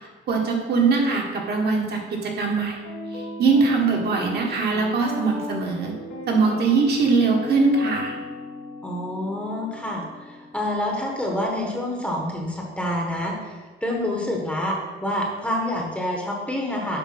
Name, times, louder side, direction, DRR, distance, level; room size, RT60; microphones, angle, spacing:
voice 1, 0.3-2.8 3.1-5.9 6.3-8.2, right 4 dB, 55° right, 0 dB, 1.5 m, -22 dB
Guitar, 2.6-10.8, left 2 dB, 90° left, 2.1 m, -36 dB
voice 2, 8.8-17.0, left 1 dB, 5° left, -1 dB, 1.1 m, -27 dB
7.7 x 4.7 x 5.9 m, 1.3 s
cardioid pair, 160°, 20 cm